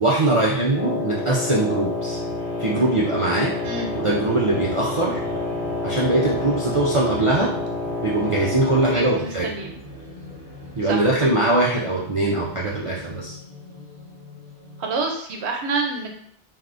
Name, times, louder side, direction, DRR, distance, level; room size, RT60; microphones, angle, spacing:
voice 1, 0.0-2.2 2.6-3.5 4.0-5.2 5.8-7.5 8.0-9.5 10.8-13.4, right 2 dB, 55° right, -5 dB, 0.3 m, -21 dB
Wind instrument woodwind instrument, 0.7-9.3, left 3 dB, 65° left, 1.1 m, -29 dB
sound 1, 1.8-15.1, equal, 35° right, 1.5 m, -39 dB
voice 2, 8.9-9.8 10.9-11.1 14.8-16.2, right 3 dB, 70° right, 2 dB, 0.9 m, -27 dB
3.4 x 2.7 x 2.5 m, 0.66 s
omnidirectional pair, 1.2 m